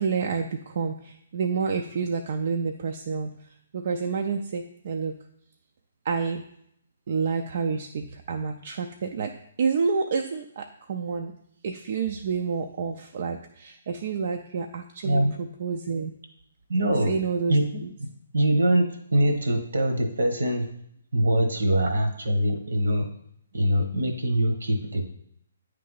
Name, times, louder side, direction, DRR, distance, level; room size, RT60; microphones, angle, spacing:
voice 1, 0.0-3.3 3.7-5.1 6.0-6.4 7.1-11.3 11.6-16.1 17.0-17.9, right 5 dB, 55° right, 4 dB, 0.4 m, -29 dB
voice 2, 15.0-15.4 16.7-17.1 17.5-17.6 18.3-20.7 21.1-23.1 23.5-25.1, right 1 dB, 70° right, 5 dB, 1.1 m, -23 dB
9.1 x 3.3 x 3.9 m, 0.72 s
figure-of-eight pair, 135°, 0 cm